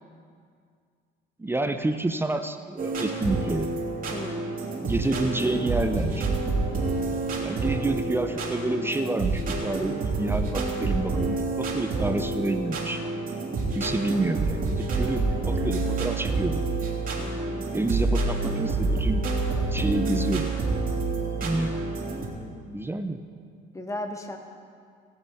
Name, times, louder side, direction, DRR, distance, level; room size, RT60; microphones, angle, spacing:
voice 1, 1.4-3.7 4.8-6.2 7.4-13.0 13.7-16.6 17.7-19.2 19.5-20.5 21.4-21.8 22.3-23.2, right 2 dB, 10° right, 7 dB, 0.6 m, -29 dB
sound 1, 2.8-22.2, right 3 dB, 45° right, 2.9 m, -28 dB
voice 2, 4.1-4.5 17.2-17.7 23.7-24.4, left 1 dB, 15° left, 4 dB, 1.4 m, -36 dB
18.0 x 6.9 x 5.5 m, 2.2 s
cardioid pair, 105°, 20 cm